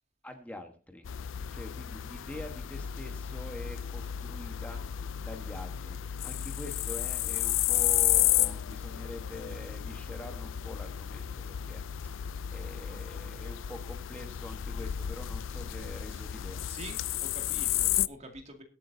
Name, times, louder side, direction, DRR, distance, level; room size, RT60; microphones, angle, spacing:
voice 1, 0.2-1.1 1.5-16.7, left 1 dB, 10° left, 4 dB, 1.3 m, -45 dB
sound 1, 1.0-18.1, left 12 dB, 85° left, 0.4 m, -32 dB
voice 2, 16.7-18.6, right 2 dB, 35° right, 3 dB, 2.3 m, -46 dB
21.5 x 8.5 x 2.7 m, 0.38 s
head